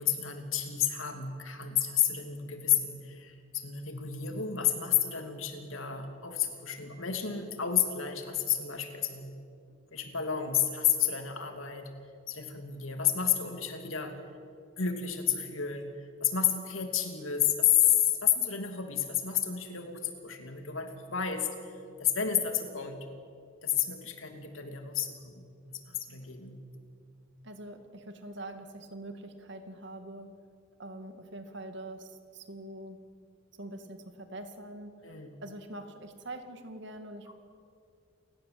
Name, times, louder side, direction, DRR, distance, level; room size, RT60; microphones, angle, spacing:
voice 1, 0.0-9.3 9.9-11.9 12.3-14.2 14.8-21.5 22.0-23.1 23.6-26.6 35.0-35.3 37.3-37.4, left 9 dB, 85° left, 5 dB, 2.9 m, -30 dB
voice 2, 27.4-30.3 30.8-33.0 33.6-34.9 35.4-37.3, right 1 dB, 60° right, 7 dB, 2.3 m, -44 dB
29.0 x 17.5 x 7.9 m, 2.4 s
head